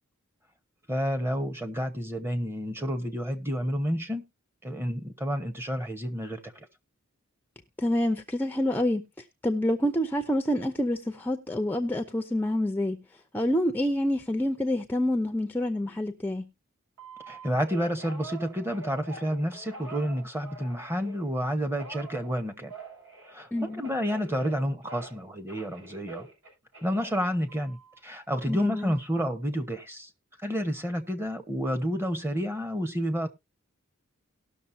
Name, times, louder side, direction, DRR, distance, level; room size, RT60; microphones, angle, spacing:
voice 1, 0.9-4.2 4.6-6.7 17.3-22.7 23.3-26.3 26.8-30.1 30.4-33.3, equal, 10° right, 1.1 m, -30 dB
voice 2, 7.8-9.1 9.4-13.0 13.3-16.5 23.5-23.8 28.5-28.9, left 1 dB, 10° left, 0.7 m, -27 dB
Telephone, 17.0-21.3 21.8-25.2 25.5-28.0 28.5-29.0, right 3 dB, 70° right, 7.8 m, -46 dB
18.5 x 6.4 x 2.7 m
head